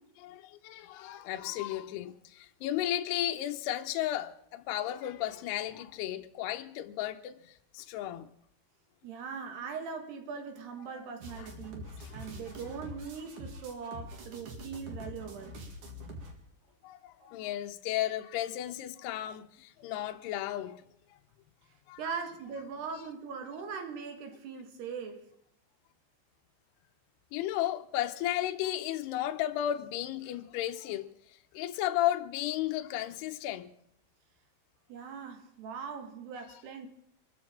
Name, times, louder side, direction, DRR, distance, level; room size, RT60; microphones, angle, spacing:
voice 1, 0.2-8.3 11.4-11.5 12.0-12.1 16.8-20.8 21.9-22.0 27.3-31.1 31.5-33.7, left 13 dB, 75° left, 2.7 m, -34 dB
voice 2, 9.0-15.6 17.2-17.3 22.0-25.3 34.9-36.9, right 6 dB, 70° right, 3.6 m, -41 dB
sound 1, 11.2-16.3, equal, 50° right, 3.3 m, -45 dB
25.5 x 14.0 x 3.7 m
omnidirectional pair, 5.1 m